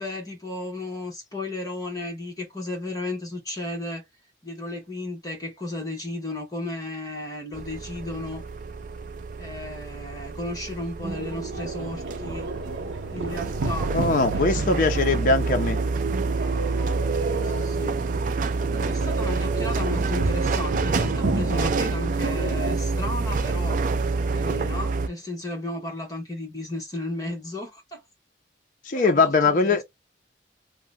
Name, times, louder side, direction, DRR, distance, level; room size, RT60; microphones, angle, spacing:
voice 1, 0.0-4.0 4.4-8.4 9.4-12.5 13.1-13.9 14.3-14.8 17.3-18.0 18.7-23.8 24.3-28.0 28.9-29.8, left 2 dB, 20° left, 1.0 m, -34 dB
sound 1, 7.5-25.1, right 4 dB, 45° right, 0.3 m, -28 dB
sound 2, 11.0-22.8, right 3 dB, 80° right, 0.7 m, -32 dB
voice 2, 13.9-15.8 28.9-29.8, left 3 dB, 45° left, 0.5 m, -21 dB
2.8 x 2.1 x 3.5 m
head